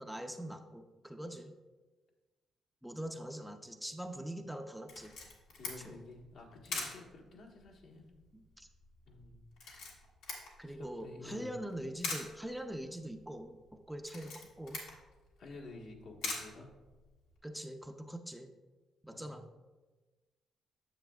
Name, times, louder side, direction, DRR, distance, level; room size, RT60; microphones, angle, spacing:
voice 1, 0.0-1.5 2.8-5.1 5.8-6.0 8.3-8.7 10.6-14.8 17.4-18.5 19.0-19.5, right 1 dB, 5° right, 6 dB, 0.6 m, -43 dB
Camera, 4.9-17.4, left 3 dB, 90° left, 1.7 m, -46 dB
voice 2, 5.6-8.1 9.0-9.4 10.3-11.5 15.4-16.7 19.1-19.4, left 2 dB, 70° left, 0 dB, 1.4 m, -51 dB
9.2 x 6.9 x 2.4 m, 1.2 s
supercardioid pair, 65°, 0 cm